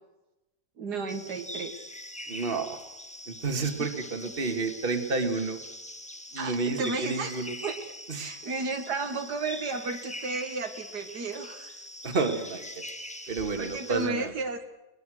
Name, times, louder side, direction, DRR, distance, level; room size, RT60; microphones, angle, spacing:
voice 1, 0.8-1.8 6.4-7.8 8.1-11.8 13.6-14.6, right 3 dB, 75° right, 6 dB, 2.1 m, -33 dB
Thailand jungle day birds crickets insects echo cleaned, 1.1-14.1, left 1 dB, 5° left, 0.9 m, -43 dB
voice 2, 2.3-2.8 3.3-5.6 6.3-7.6 8.1-8.3 12.0-12.8 13.3-14.3, right 3 dB, 35° right, 6 dB, 2.1 m, -30 dB
22.5 x 20.5 x 6.4 m, 0.99 s
omnidirectional pair, 1.8 m